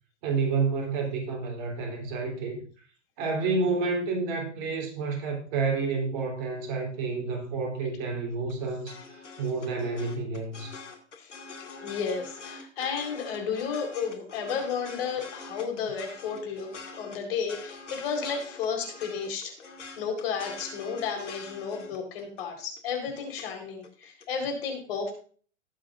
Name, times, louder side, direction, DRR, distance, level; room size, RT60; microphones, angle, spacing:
voice 1, 0.2-2.6 3.2-10.8, right 4 dB, 40° right, 3.6 m, -29 dB
sound 1, 8.3-23.5 23.8-24.2, left 4 dB, 80° left, 2.3 m, -44 dB
voice 2, 11.8-16.7 17.0-19.5 20.0-25.1, left 6 dB, 55° left, 4.2 m, -32 dB
19.0 x 7.8 x 2.6 m
hypercardioid pair, 110°, 35 cm